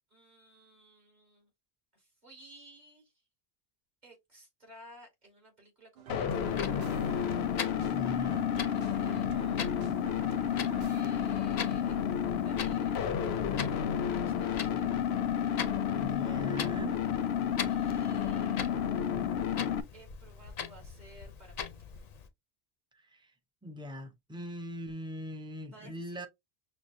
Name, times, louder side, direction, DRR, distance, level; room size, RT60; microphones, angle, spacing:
voice 1, 0.1-1.5 1.9-3.1 4.0-7.0 8.7-9.9 10.6-12.1 12.4-15.0 17.7-18.8 19.9-21.7 25.7-26.3, right 1 dB, 45° right, 2.3 m, -56 dB
sound 1, 6.0-11.0, right 8 dB, 80° right, 0.8 m, -49 dB
sound 2, 6.1-19.8, left 8 dB, 90° left, 0.8 m, -31 dB
Clock, 6.3-22.3, left 6 dB, 50° left, 0.6 m, -43 dB
voice 2, 7.8-8.5 15.9-17.0 22.9-23.3 23.6-26.3, equal, 10° right, 0.3 m, -41 dB
6.0 x 2.1 x 2.5 m
omnidirectional pair, 1.0 m